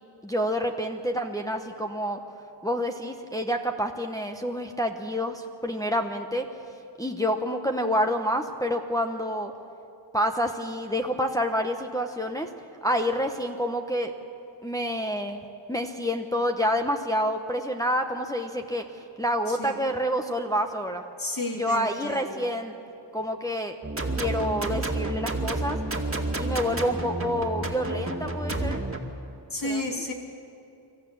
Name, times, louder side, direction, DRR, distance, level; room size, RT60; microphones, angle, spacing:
voice 1, 0.2-2.2 2.6-6.5 7.0-9.5 10.1-12.5 12.8-14.1 14.6-15.4 15.7-21.0 21.6-22.7 23.1-23.7 24.2-25.8 26.4-28.8 29.6-29.8, equal, 10° left, 3 dB, 1.0 m, -28 dB
voice 2, 21.2-22.4 29.5-30.1, left 1 dB, 50° left, 0 dB, 3.1 m, -32 dB
sound 1, 23.8-29.0, right 2 dB, 30° right, 2.1 m, -30 dB
25.0 x 14.0 x 8.7 m, 2.7 s
wide cardioid pair, 90°, 44 cm